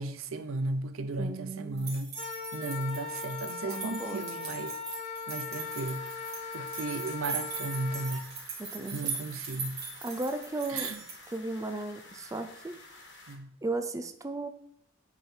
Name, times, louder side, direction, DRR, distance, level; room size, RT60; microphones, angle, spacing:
voice 1, 0.0-2.1 2.5-4.8 5.3-6.1 6.5-8.2 8.9-9.8 10.7-11.0 13.3-13.5, right 2 dB, 90° right, 0.6 m, -35 dB
voice 2, 1.2-1.9 3.6-4.3 8.6-9.1 10.0-10.9 11.3-12.8 13.6-14.5, right 2 dB, 15° right, 0.4 m, -35 dB
sound 1, 1.8-11.3, right 5 dB, 55° right, 2.3 m, -40 dB
Wind instrument woodwind instrument, 2.1-8.2, left 5 dB, 35° left, 1.2 m, -39 dB
sound 2, 5.5-13.4, left 2 dB, 60° left, 1.4 m, -51 dB
8.0 x 4.0 x 4.4 m
head